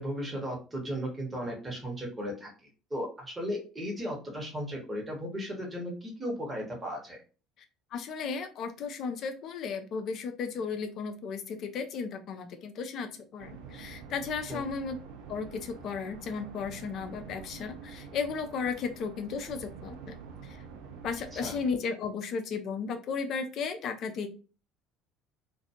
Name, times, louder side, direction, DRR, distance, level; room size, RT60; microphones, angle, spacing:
voice 1, 0.0-2.5 2.9-7.2 14.5-14.6 21.3-21.5, equal, 20° right, -1 dB, 1.0 m, -36 dB
voice 2, 7.9-15.0 15.3-20.2 20.4-20.6 21.0-24.3, left 5 dB, 45° left, 7 dB, 0.4 m, -35 dB
sound 1, 13.4-21.7, right 5 dB, 60° right, 0.5 m, -47 dB
2.4 x 2.2 x 2.8 m, 0.35 s
figure-of-eight pair, 60°, 0 cm